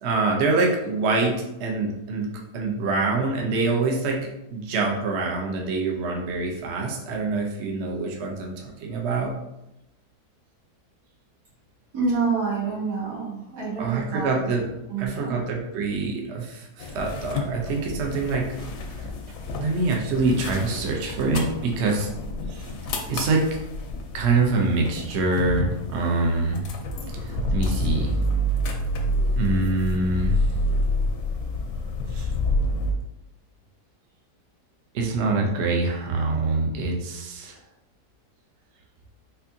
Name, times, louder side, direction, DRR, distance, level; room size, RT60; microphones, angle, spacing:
voice 1, 0.0-4.2 4.5-9.3 13.8-14.7 15.0-18.5 19.6-22.1 22.5-22.7 23.1-23.4 24.1-26.6 27.2-28.1 29.4-30.4 32.1-32.3 34.9-37.6, right 3 dB, 60° right, 0 dB, 0.7 m, -25 dB
voice 2, 11.9-14.5 14.9-15.4, right 4 dB, 80° right, -8 dB, 2.2 m, -27 dB
sound 1, 16.8-32.9, left 1 dB, 85° left, 1.2 m, -28 dB
4.3 x 2.7 x 2.6 m, 0.89 s
omnidirectional pair, 1.7 m